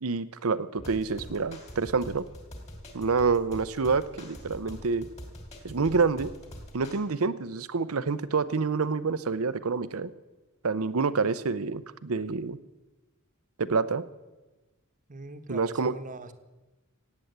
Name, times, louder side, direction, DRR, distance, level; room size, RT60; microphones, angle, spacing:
voice 1, 0.0-2.2 2.9-5.1 5.6-6.3 6.7-10.1 10.6-12.6 13.6-14.0 15.5-15.9, right 4 dB, 90° right, 15 dB, 0.7 m, -27 dB
sound 1, 0.8-7.0, equal, 35° left, 2.8 m, -45 dB
voice 2, 15.1-16.3, right 2 dB, 40° right, 9 dB, 1.0 m, -40 dB
17.0 x 8.8 x 8.0 m, 1.1 s
head